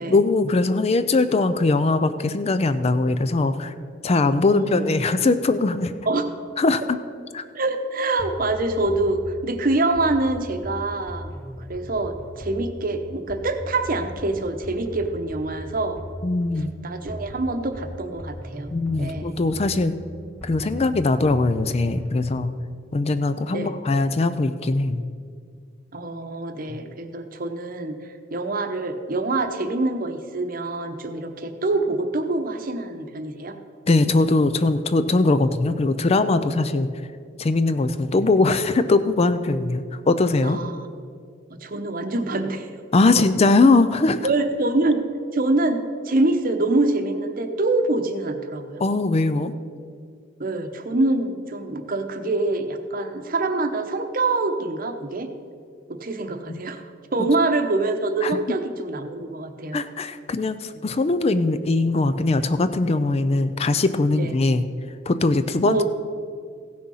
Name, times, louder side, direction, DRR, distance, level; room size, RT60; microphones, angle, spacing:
voice 1, 0.1-3.7 4.0-5.9 6.6-7.0 7.3-7.4 16.2-16.7 18.7-19.9 20.4-22.5 22.9-25.0 26.7-26.8 33.9-36.9 37.4-40.6 42.9-44.2 48.8-49.5 56.5-56.6 58.2-58.4 59.7-64.7 65.1-65.8, left 3 dB, 30° left, 11 dB, 0.4 m, -21 dB
voice 2, 4.5-4.9 6.1-6.3 7.5-11.3 11.7-16.0 16.8-19.4 23.5-23.7 25.9-33.5 40.4-40.9 41.5-42.7 43.1-43.2 44.2-45.0 45.3-48.8 50.4-55.3 55.9-56.8 57.1-59.8 64.2-64.3 65.6-65.8, right 2 dB, 50° right, 7 dB, 0.9 m, -25 dB
sound 1, 8.2-22.4, equal, 15° left, 2.1 m, -38 dB
16.0 x 6.3 x 5.6 m, 2.2 s
head